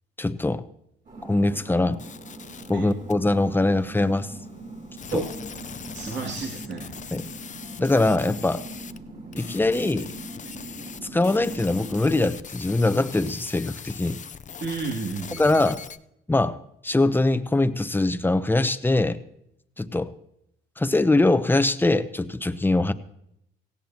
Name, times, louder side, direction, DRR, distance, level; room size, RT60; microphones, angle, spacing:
voice 1, 0.2-0.6 1.2-2.0 2.7-4.3 5.1-5.2 7.1-7.3 7.8-8.6 9.3-10.1 11.1-14.2 15.4-15.8 16.3-16.6 16.8-19.2 19.8-20.1 20.8-22.9, left 2 dB, 10° left, 12 dB, 0.8 m, -22 dB
sound 1, 1.0-12.3, right 2 dB, 45° right, 5.0 m, -41 dB
sound 2, 1.9-3.1 5.0-9.0 9.3-16.0, left 7 dB, 40° left, 0.6 m, -41 dB
voice 2, 5.9-6.9 14.6-15.6, right 4 dB, 60° right, -2 dB, 2.6 m, -31 dB
18.0 x 15.5 x 2.9 m, 0.76 s
cardioid pair, 90°, 20 cm